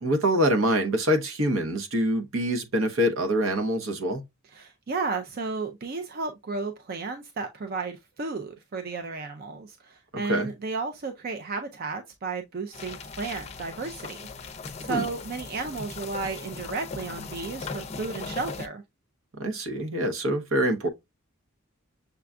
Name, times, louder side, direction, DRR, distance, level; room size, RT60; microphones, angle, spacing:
voice 1, 0.0-4.2 10.3-10.5 14.9-15.0 19.4-20.9, equal, 75° right, 0.9 m, -25 dB
voice 2, 4.5-14.3 14.8-18.8, right 4 dB, 45° right, 0.4 m, -33 dB
sound 1, 12.7-18.7, left 4 dB, 30° left, 0.5 m, -38 dB
6.7 x 2.3 x 2.4 m
head